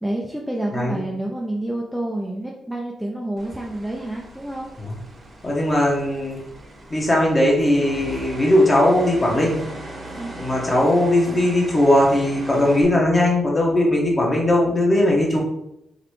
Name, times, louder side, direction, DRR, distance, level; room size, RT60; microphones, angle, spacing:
voice 1, 0.0-4.7 10.1-10.3, right 1 dB, ahead, -2 dB, 0.5 m, -28 dB
sound 1, 3.4-12.8, right 2 dB, 35° right, 1.0 m, -38 dB
voice 2, 5.4-6.4 6.9-9.6 10.4-15.4, left 1 dB, 25° left, -2 dB, 1.2 m, -19 dB
3.9 x 3.5 x 3.2 m, 0.84 s
cardioid pair, 110°, 0 cm